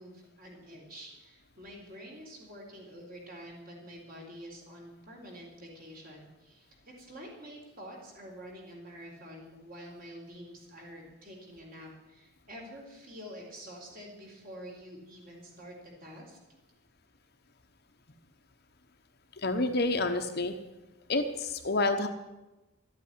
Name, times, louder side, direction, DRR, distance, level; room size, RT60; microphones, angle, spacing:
voice 1, 0.0-16.4, equal, 40° right, -1 dB, 4.1 m, -47 dB
voice 2, 19.4-20.6 21.1-22.1, left 2 dB, 45° left, 6 dB, 1.0 m, -28 dB
13.0 x 8.6 x 9.7 m, 1.1 s
head